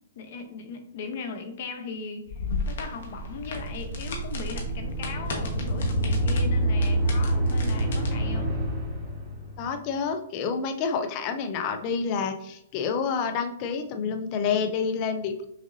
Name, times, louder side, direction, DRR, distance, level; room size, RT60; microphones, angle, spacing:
voice 1, 0.1-8.5, left 4 dB, 40° left, 5 dB, 0.8 m, -38 dB
sound 1, 2.3-8.1, left 2 dB, 60° left, 1.2 m, -36 dB
sound 2, 2.8-9.7, right 1 dB, 10° right, 1.1 m, -27 dB
voice 2, 9.6-15.5, left 6 dB, 25° left, 7 dB, 0.4 m, -28 dB
6.0 x 2.6 x 2.6 m, 0.75 s
hypercardioid pair, 175°, 0 cm